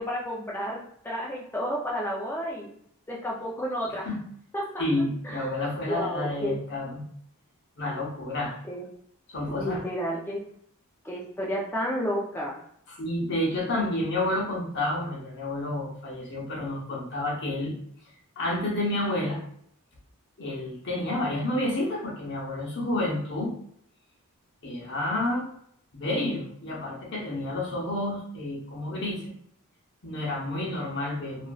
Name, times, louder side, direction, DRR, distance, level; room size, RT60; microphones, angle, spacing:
voice 1, 0.0-2.7 3.1-4.1 4.5-4.8 5.2-5.6 5.9-6.6 8.6-8.9 9.5-10.4 11.0-12.6, equal, 10° left, -5 dB, 0.4 m, -31 dB
voice 2, 4.8-7.0 7.8-8.6 9.3-9.8 12.9-17.7 18.4-19.4 20.4-23.5 24.6-25.5 25.9-29.2 30.0-31.5, left 1 dB, 50° left, -2 dB, 0.9 m, -30 dB
3.1 x 2.5 x 2.3 m, 0.66 s
head